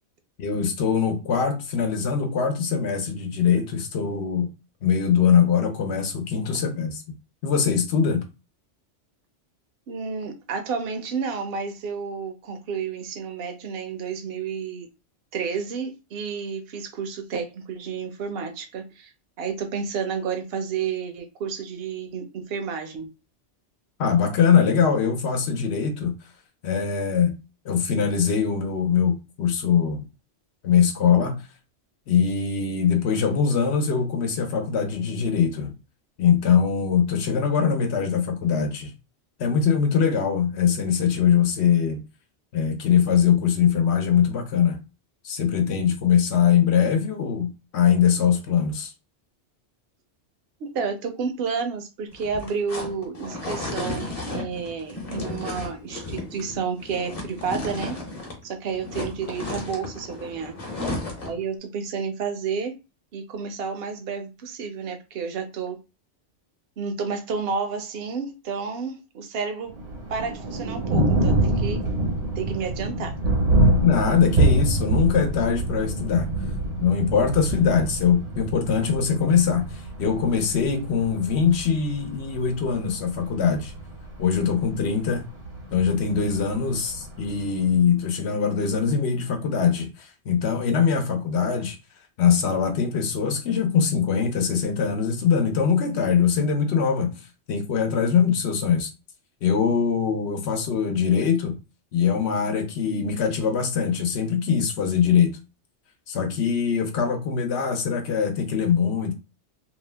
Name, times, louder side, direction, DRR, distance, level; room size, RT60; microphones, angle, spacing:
voice 1, 0.4-4.5 4.8-7.0 7.4-8.2 24.0-26.1 26.6-27.4 27.6-30.1 30.6-31.4 32.1-35.7 36.2-38.9 39.4-42.0 42.5-44.8 45.2-48.9 73.8-76.3 76.8-83.7 84.2-85.2 85.7-91.8 92.2-97.1 97.5-98.9 99.4-101.5 101.9-105.3 106.1-109.1, left 7 dB, 70° left, 0.9 m, -22 dB
voice 2, 9.9-14.9 15.3-19.1 19.4-23.1 50.6-58.0 58.4-60.5 61.2-62.7 63.1-65.8 66.8-69.8 70.1-71.9 72.4-73.1, right 5 dB, 60° right, 0.8 m, -31 dB
sound 1, 52.1-58.4 58.7-61.4, left 2 dB, 35° left, 0.8 m, -33 dB
Thunder, 69.7-87.7, right 2 dB, 80° right, 1.3 m, -26 dB
2.8 x 2.1 x 3.2 m
omnidirectional pair, 1.2 m